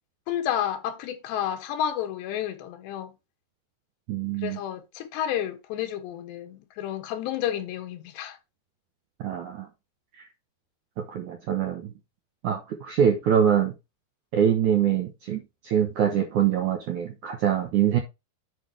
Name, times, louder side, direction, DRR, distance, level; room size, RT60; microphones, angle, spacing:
voice 1, 0.3-3.1 4.4-8.4, left 10 dB, 90° left, 3.5 m, -31 dB
voice 2, 4.1-4.6 9.2-9.7 10.2-10.3 11.0-11.9 12.4-13.7 14.3-18.0, right 9 dB, 70° right, 1.9 m, -24 dB
8.4 x 5.8 x 3.3 m
omnidirectional pair, 4.8 m